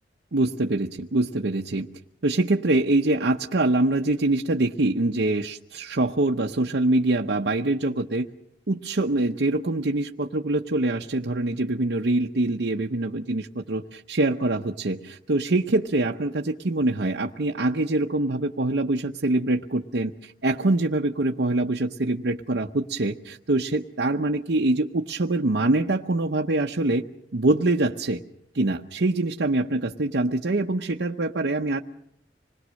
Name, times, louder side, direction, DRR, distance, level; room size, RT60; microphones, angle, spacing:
voice 1, 0.3-1.9 2.2-8.3 8.7-27.0 27.3-28.2 28.5-31.8, right 2 dB, 70° right, 1 dB, 0.8 m, -24 dB
26.5 x 21.0 x 6.4 m, 0.74 s
head